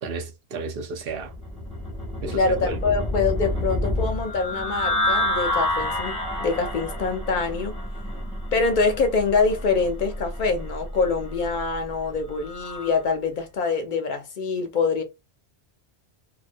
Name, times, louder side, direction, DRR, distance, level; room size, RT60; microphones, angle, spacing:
voice 1, 0.0-1.3 2.2-2.8, right 4 dB, 65° right, 0.7 m, -32 dB
sound 1, 1.1-13.0, left 1 dB, 10° left, 0.4 m, -29 dB
voice 2, 2.3-7.8 8.5-15.0, left 4 dB, 60° left, 0.6 m, -25 dB
2.3 x 2.1 x 2.5 m
omnidirectional pair, 1.1 m